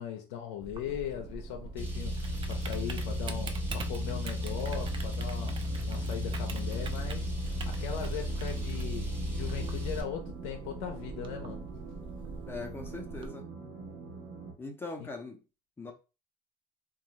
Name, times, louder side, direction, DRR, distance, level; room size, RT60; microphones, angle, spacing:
voice 1, 0.0-11.7 15.0-15.1 15.9-16.0, left 9 dB, 85° left, 0.5 m, -39 dB
Typing, 0.6-13.3, right 4 dB, 35° right, 0.5 m, -44 dB
sound 1, 0.8-14.5, right 5 dB, 75° right, 1.0 m, -47 dB
Car, 1.8-10.0, left 1 dB, 15° right, 1.1 m, -34 dB
voice 2, 12.5-13.5 14.6-15.4 15.8-15.9, left 3 dB, 15° left, 0.7 m, -41 dB
2.6 x 2.4 x 3.1 m
supercardioid pair, 105°, 14 cm